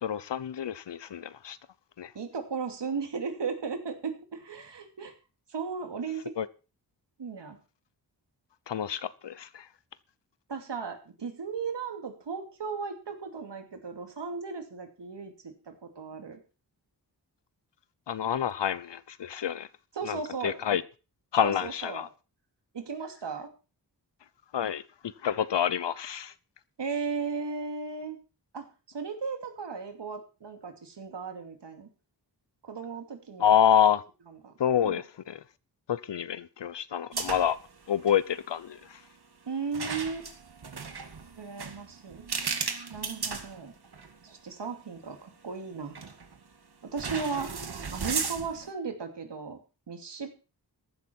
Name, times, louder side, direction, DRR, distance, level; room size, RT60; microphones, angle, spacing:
voice 1, 0.0-1.6 2.0-2.1 6.4-6.5 8.7-9.6 18.1-19.7 20.0-20.8 21.3-22.1 24.5-26.3 33.4-34.0 34.6-35.4 35.9-37.6 37.9-38.8, left 9 dB, 80° left, 0.9 m, -27 dB
voice 2, 2.1-5.1 5.5-6.3 7.2-7.6 10.5-16.4 19.9-20.8 21.4-22.1 22.7-23.5 26.8-28.2 28.5-31.9 32.7-33.5 34.3-34.5 34.8-35.0 39.5-40.3 41.4-42.3 42.9-43.7 44.2-46.0 46.8-47.6 47.9-49.6 49.9-50.3, right 5 dB, 80° right, 2.7 m, -36 dB
sound 1, 37.1-37.7 37.9-38.2 39.7-44.1 44.6-44.7 45.9-46.4 47.0-48.7, right 5 dB, 65° right, 2.2 m, -35 dB
15.0 x 12.0 x 4.6 m
wide cardioid pair, 115°, 42 cm